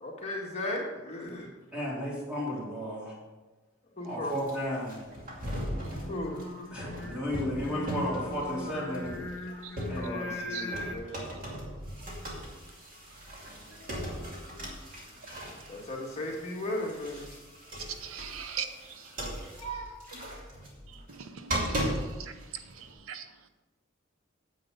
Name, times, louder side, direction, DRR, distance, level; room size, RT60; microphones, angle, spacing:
voice 1, 0.0-1.5 4.0-4.4 6.1-6.4 9.5-9.6 9.9-11.3 13.7-14.0 15.7-17.3 19.6-19.9, left 1 dB, 30° left, -2 dB, 1.9 m, -36 dB
voice 2, 1.7-3.2 4.0-5.0 6.7-9.2 9.9-10.6 14.1-14.2 15.4-15.5, equal, 5° right, -7 dB, 3.7 m, -34 dB
sound 1, 4.3-10.4 10.7-22.9, equal, 40° right, 2.5 m, -38 dB
Singing, 5.9-11.0, left 1 dB, 60° left, 1.7 m, -40 dB
voice 3, 18.0-19.2 20.9-23.3, right 7 dB, 85° right, 9 dB, 0.7 m, -41 dB
9.3 x 8.1 x 5.2 m, 1.1 s
head